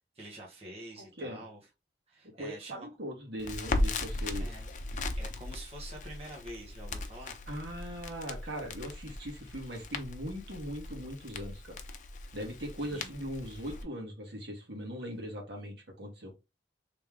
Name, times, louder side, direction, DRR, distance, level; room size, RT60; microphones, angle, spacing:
voice 1, 0.1-1.6 2.1-2.9 4.4-4.7 5.2-7.4 12.8-13.1, right 1 dB, 35° right, 1.2 m, -47 dB
voice 2, 1.0-1.4 2.2-4.5 7.5-11.8 12.3-16.3, equal, 70° right, 1.7 m, -40 dB
Crackle, 3.4-13.8, left 2 dB, 45° left, 0.5 m, -38 dB
3.4 x 3.2 x 3.5 m
head